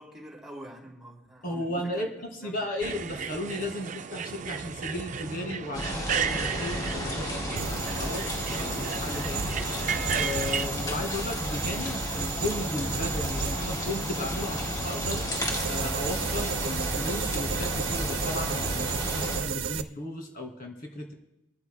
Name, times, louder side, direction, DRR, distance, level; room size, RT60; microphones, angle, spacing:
voice 1, 0.0-2.1 2.4-2.6, right 1 dB, 5° right, 3.2 m, -46 dB
voice 2, 1.4-7.4 7.7-9.5 9.8-15.2 15.7-21.1, left 1 dB, 45° left, 2.3 m, -35 dB
sound 1, 2.8-10.7, right 7 dB, 40° right, 0.4 m, -34 dB
sound 2, 5.7-19.4, left 1 dB, 20° left, 2.2 m, -32 dB
sound 3, 7.6-19.8, right 8 dB, 75° right, 0.7 m, -34 dB
25.5 x 14.5 x 2.2 m
head